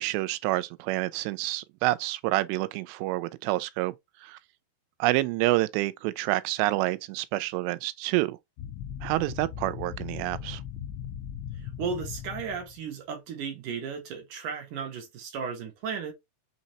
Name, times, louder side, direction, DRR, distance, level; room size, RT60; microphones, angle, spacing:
voice 1, 0.0-4.0 4.2-4.4 5.0-8.4 9.0-10.6, right 18 dB, 85° right, 2.7 m, -28 dB
sound 1, 8.6-12.8, left 9 dB, 85° left, 2.8 m, -38 dB
voice 2, 11.5-16.1, right 6 dB, 65° right, 2.1 m, -35 dB
6.3 x 2.7 x 2.9 m
omnidirectional pair, 4.9 m